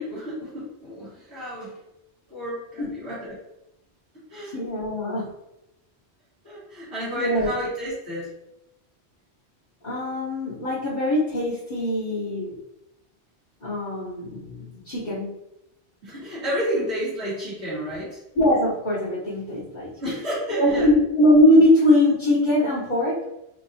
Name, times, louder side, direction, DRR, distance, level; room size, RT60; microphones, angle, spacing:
voice 1, 0.0-1.8 2.3-3.4 4.3-4.5 6.4-8.3 16.0-18.2 20.0-20.9, equal, 85° right, -13 dB, 2.0 m, -30 dB
voice 2, 4.4-5.3 7.1-7.5 9.8-12.6 13.6-15.3 18.3-19.9 20.5-23.2, left 1 dB, 50° left, -10 dB, 1.2 m, -21 dB
4.4 x 2.6 x 2.7 m, 0.88 s
omnidirectional pair, 1.1 m